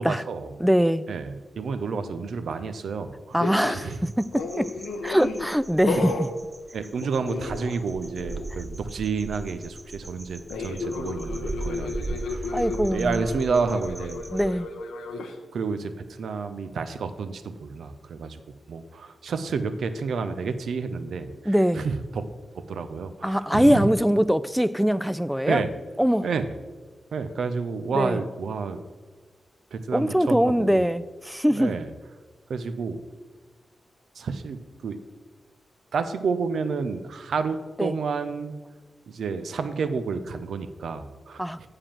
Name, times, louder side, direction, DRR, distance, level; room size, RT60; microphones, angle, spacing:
voice 1, 0.0-0.5 1.1-3.4 3.7-4.1 5.9-6.1 6.7-12.6 12.9-14.2 15.5-18.4 18.7-22.2 22.5-23.9 25.4-25.7 26.2-26.5 27.1-28.8 29.7-30.9 31.5-31.9 32.5-33.0 34.1-35.0 35.9-38.5 39.1-41.7, right 5 dB, 75° right, 0.6 m, -30 dB
voice 2, 0.6-1.1 3.3-4.7 5.0-6.3 12.5-13.2 14.3-14.7 21.5-21.9 23.2-25.7 26.0-26.3 27.9-28.2 29.9-31.7 37.8-38.0 41.4-41.7, equal, 5° right, 0.4 m, -22 dB
sound 1, 3.4-3.9 4.3-5.5 5.8-6.3 7.0-7.9 8.2-8.5 10.5-15.3, left 3 dB, 90° left, 0.7 m, -33 dB
sound 2, 3.4-14.5, right 2 dB, 30° right, 0.9 m, -38 dB
7.5 x 4.9 x 7.3 m
supercardioid pair, 40°, 0 cm